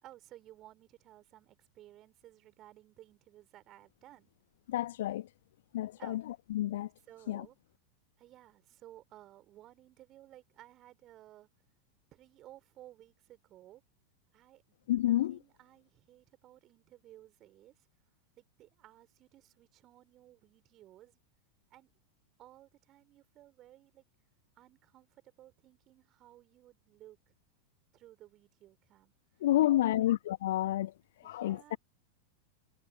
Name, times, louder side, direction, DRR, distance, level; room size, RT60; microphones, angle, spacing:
voice 1, 0.0-4.3 6.0-6.3 7.1-7.6 8.2-11.5 12.1-13.8 14.3-14.8 15.3-17.9 18.4-21.2 21.7-21.9 22.4-24.0 24.5-27.3 27.9-30.1 31.2-31.8, right 14 dB, 35° right, 4.5 m, -57 dB
voice 2, 4.7-5.3 5.7-6.9 7.3-7.4 14.9-15.4 29.4-30.9 31.2-31.8, left 14 dB, 55° left, 1.2 m, -30 dB
figure-of-eight pair, 90°, 0 cm